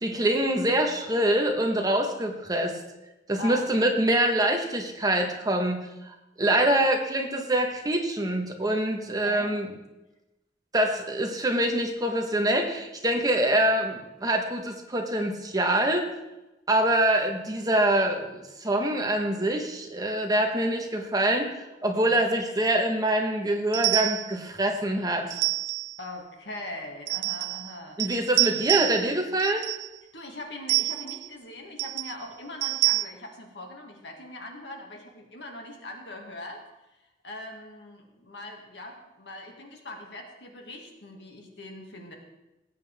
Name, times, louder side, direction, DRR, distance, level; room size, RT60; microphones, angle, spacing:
voice 1, 0.0-2.8 3.3-9.7 10.7-16.0 16.7-25.4 28.0-29.6, right 1 dB, 20° right, 3 dB, 1.3 m, -25 dB
voice 2, 9.2-9.5 26.0-28.3 28.7-28.8 30.1-36.6 37.2-42.1, left 1 dB, 85° left, 2 dB, 2.2 m, -41 dB
sound 1, 23.7-24.3 25.3-26.0 27.1-27.7 28.0-29.1 29.4-29.9 30.7-31.3 31.8-32.1 32.6-33.0, right 20 dB, 75° right, 0.3 m, -27 dB
18.5 x 8.5 x 3.6 m, 0.98 s
head